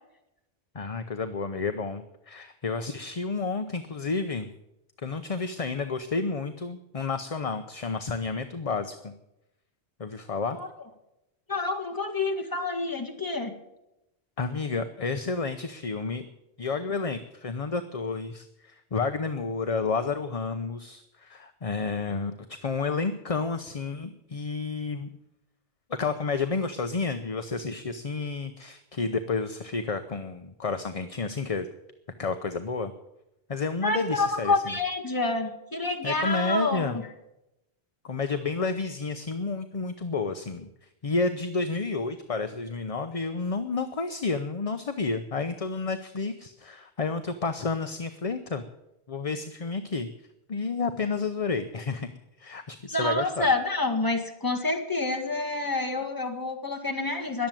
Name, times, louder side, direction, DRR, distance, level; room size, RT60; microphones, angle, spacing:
voice 1, 0.7-4.5 5.0-9.1 10.0-10.6 14.4-16.3 16.6-25.1 25.9-31.7 32.2-32.9 33.5-34.7 36.0-37.0 38.0-40.7 41.0-48.6 49.1-50.1 50.5-52.1 52.4-53.5, left 4 dB, 35° left, 9 dB, 0.8 m, -30 dB
voice 2, 11.5-13.6 33.8-37.0 52.9-57.5, left 2 dB, 20° left, 2 dB, 1.8 m, -28 dB
21.0 x 7.5 x 9.1 m, 0.91 s
omnidirectional pair, 1.1 m